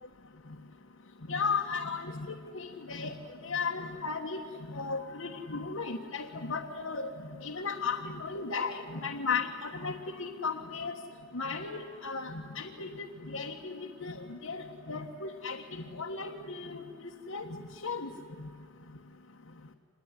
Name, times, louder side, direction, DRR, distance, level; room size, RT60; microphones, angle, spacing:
voice 1, 1.3-3.2 3.4-4.4 4.7-7.1 7.4-10.9 11.3-18.1 18.4-18.5, left 4 dB, 85° left, 1 dB, 1.5 m, -35 dB
26.0 x 21.0 x 9.8 m, 2.1 s
head